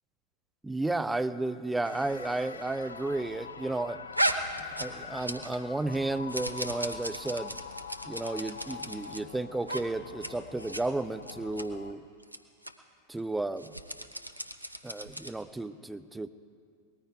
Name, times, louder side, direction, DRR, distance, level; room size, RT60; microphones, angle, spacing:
voice 1, 0.6-4.0 4.6-7.6 8.1-12.0 13.1-13.7 14.8-16.3, right 2 dB, 5° right, 13 dB, 0.5 m, -33 dB
sound 1, 1.8-11.9, left 5 dB, 75° left, 0.6 m, -44 dB
sound 2, 4.1-5.6 5.9-9.2 9.6-9.8 10.1-10.3 10.6-10.8 11.2-11.6 12.2-12.4 12.6-12.7 13.5-15.4, right 1 dB, 90° right, 0.8 m, -35 dB
19.5 x 14.0 x 4.7 m, 2.2 s
figure-of-eight pair, 90°, 0 cm